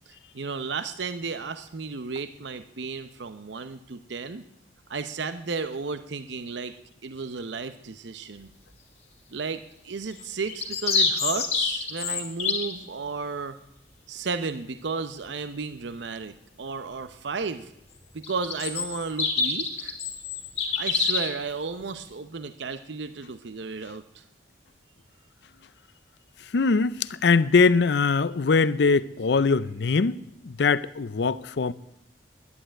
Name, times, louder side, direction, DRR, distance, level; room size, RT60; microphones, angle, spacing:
voice 1, 0.1-4.4 4.9-6.7 7.0-8.5 9.3-13.6 14.1-17.7 18.1-20.0 20.8-24.2, right 4 dB, 75° right, 0.7 m, -33 dB
sound 1, 10.2-12.7 18.2-21.4, left 4 dB, 35° left, 2.1 m, -27 dB
voice 2, 26.5-31.7, left 4 dB, 65° left, 0.5 m, -22 dB
11.5 x 9.8 x 8.9 m
head